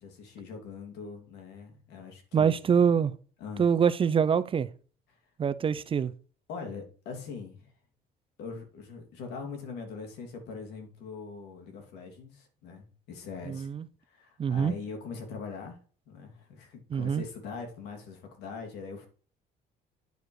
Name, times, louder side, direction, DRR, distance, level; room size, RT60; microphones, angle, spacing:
voice 1, 0.0-2.5 3.4-3.7 6.5-7.7 8.4-13.7 14.1-15.8 16.1-19.1, left 5 dB, 85° left, 2.7 m, -42 dB
voice 2, 2.3-3.1 3.6-4.7 5.4-6.1 13.4-13.9 14.4-14.7 16.9-17.2, right 7 dB, 30° right, 0.5 m, -25 dB
9.2 x 4.8 x 4.7 m
cardioid pair, 110°, 17 cm